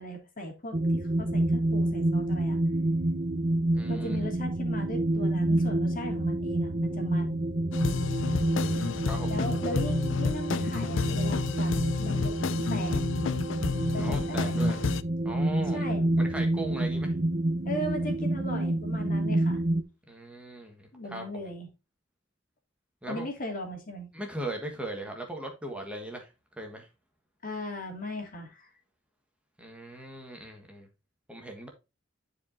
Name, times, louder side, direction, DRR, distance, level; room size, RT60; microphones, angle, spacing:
voice 1, 0.0-2.6 3.9-7.4 9.2-12.3 12.7-13.0 13.9-14.8 15.7-16.3 17.7-19.6 20.9-21.7 23.1-24.1 27.4-28.7, left 1 dB, 45° left, 2.5 m, -38 dB
sound 1, 0.7-19.8, right 1 dB, 40° right, 0.9 m, -28 dB
voice 2, 3.7-4.2 8.5-9.4 14.0-14.8 15.2-17.1 20.1-21.2 23.0-23.3 24.1-26.9 29.6-30.9 31.3-31.7, right 1 dB, 5° right, 1.6 m, -39 dB
sound 2, 7.7-15.0, left 5 dB, 80° left, 0.5 m, -31 dB
11.0 x 5.0 x 2.7 m
head